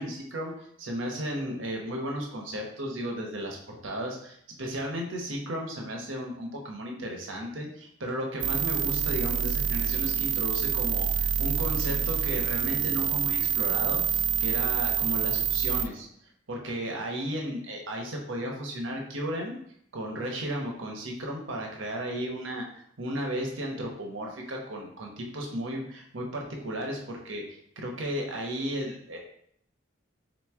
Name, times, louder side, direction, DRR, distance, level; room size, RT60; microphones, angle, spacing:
voice 1, 0.0-16.1 16.5-19.6 19.9-29.2, equal, 80° right, 0 dB, 0.9 m, -34 dB
sound 1, 8.4-15.9, right 8 dB, 60° right, 0.3 m, -27 dB
3.8 x 3.1 x 3.5 m, 0.70 s
head